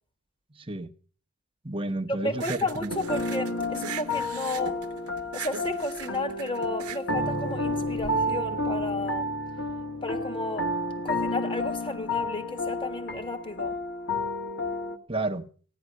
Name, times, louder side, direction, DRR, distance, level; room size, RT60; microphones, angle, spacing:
voice 1, 0.5-0.9 1.6-2.9 15.1-15.5, right 2 dB, 25° right, 0.9 m, -31 dB
voice 2, 2.2-4.8 5.3-9.3 10.0-10.7 11.0-13.8, left 2 dB, 25° left, 1.5 m, -33 dB
sound 1, 2.3-8.1, right 7 dB, 80° right, 0.8 m, -40 dB
sound 2, 2.9-15.0, left 1 dB, 50° left, 1.6 m, -31 dB
15.5 x 10.5 x 6.3 m
head